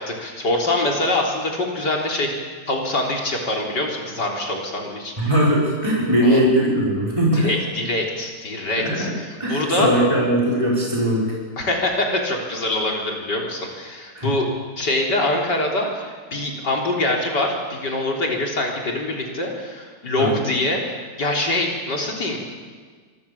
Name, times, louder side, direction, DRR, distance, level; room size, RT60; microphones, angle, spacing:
voice 1, 0.0-2.3 2.7-5.1 6.2-6.4 7.3-9.9 11.6-14.5 14.8-20.8 21.2-22.4, left 2 dB, 80° left, 0 dB, 4.4 m, -24 dB
voice 2, 5.2-7.5 8.8-9.1 9.4-11.3 14.2-14.3 20.2-20.4, equal, 15° right, -5 dB, 6.1 m, -20 dB
26.5 x 23.5 x 7.3 m, 1.5 s
omnidirectional pair, 1.8 m